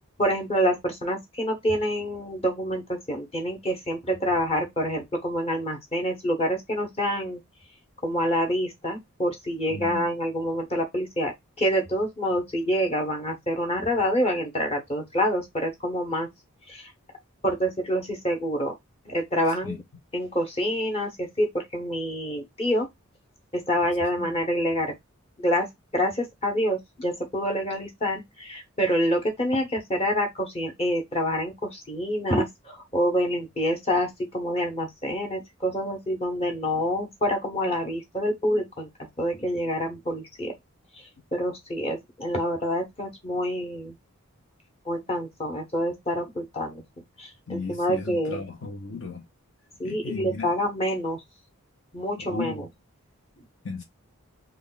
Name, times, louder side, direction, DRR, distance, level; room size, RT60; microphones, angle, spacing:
voice 1, 0.2-7.4 8.0-11.3 11.6-16.3 16.7-16.9 17.4-18.7 19.1-19.8 20.1-22.9 23.5-24.9 25.4-25.7 25.9-38.9 39.2-40.5 41.3-43.9 44.8-46.8 47.2-48.4 49.8-51.2 51.9-52.7, equal, 30° left, 0.9 m, -27 dB
voice 2, 9.7-10.0 19.6-19.8 24.2-24.3 47.5-49.2 49.8-50.5 52.2-52.7 53.6-53.8, left 4 dB, 60° left, 0.7 m, -35 dB
3.3 x 2.3 x 3.8 m
head